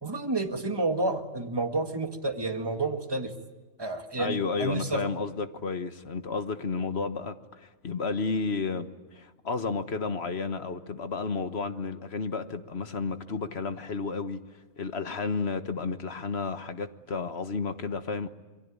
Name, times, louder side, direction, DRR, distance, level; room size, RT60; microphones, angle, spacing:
voice 1, 0.0-3.3 3.8-5.0, right 2 dB, 20° right, 2.0 m, -30 dB
voice 2, 4.2-14.4 14.8-18.3, left 4 dB, 60° left, 1.6 m, -32 dB
28.0 x 23.0 x 8.8 m
omnidirectional pair, 1.3 m